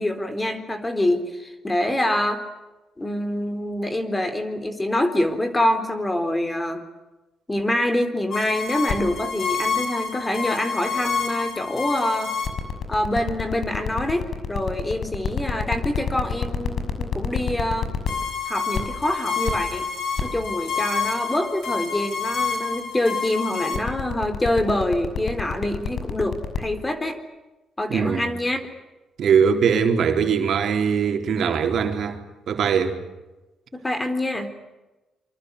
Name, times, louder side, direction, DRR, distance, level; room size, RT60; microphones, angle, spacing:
voice 1, 0.0-2.4 3.0-6.8 7.5-12.3 12.9-17.9 18.5-19.9 20.2-27.2 27.8-28.6 33.7-34.5, left 1 dB, 15° left, 4.0 m, -25 dB
sound 1, 8.3-26.6, left 6 dB, 55° left, 6.2 m, -27 dB
voice 2, 27.9-28.3 29.2-32.2 32.5-33.0, right 6 dB, 60° right, 4.0 m, -21 dB
27.5 x 25.0 x 8.3 m
cardioid pair, 110°, 0 cm